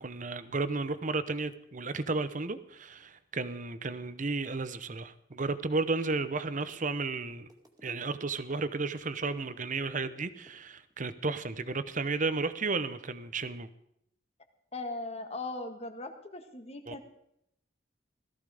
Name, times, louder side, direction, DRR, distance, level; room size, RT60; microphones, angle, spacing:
voice 1, 0.0-7.5 7.8-13.7 16.9-17.0, right 3 dB, 45° right, 0.9 m, -33 dB
sound 1, 5.3-5.6 5.9-9.7 10.0-10.9, right 1 dB, 20° right, 2.2 m, -57 dB
voice 2, 14.7-17.1, left 2 dB, 35° left, 1.7 m, -39 dB
17.5 x 14.0 x 5.0 m
head